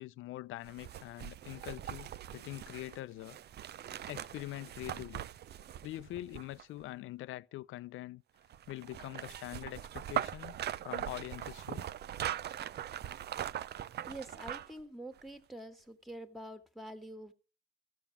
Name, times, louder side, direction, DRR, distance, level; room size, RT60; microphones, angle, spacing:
voice 1, 0.0-3.4 4.1-5.2 5.8-8.2 8.7-10.6 10.8-11.9, left 16 dB, 85° left, 0.6 m, -44 dB
sound 1, 0.7-6.8 8.5-14.8 15.2-15.3, right 11 dB, 55° right, 0.5 m, -41 dB
voice 2, 14.1-17.3, right 1 dB, ahead, 1.6 m, -46 dB
14.5 x 7.0 x 7.1 m
cardioid pair, 90°, 20 cm